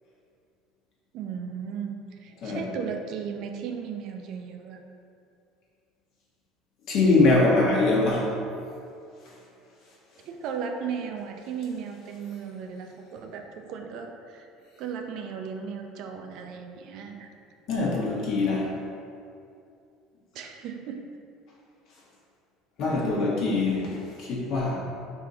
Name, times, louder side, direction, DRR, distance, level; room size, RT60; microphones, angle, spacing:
voice 1, 1.1-4.8 10.2-14.5 14.8-17.3 20.3-21.0, right 6 dB, 55° right, 4 dB, 0.4 m, -36 dB
voice 2, 6.9-8.4 17.7-18.7 22.8-24.8, left 3 dB, 55° left, -4 dB, 1.1 m, -23 dB
4.8 x 2.8 x 3.9 m, 2.5 s
figure-of-eight pair, 65°, 0 cm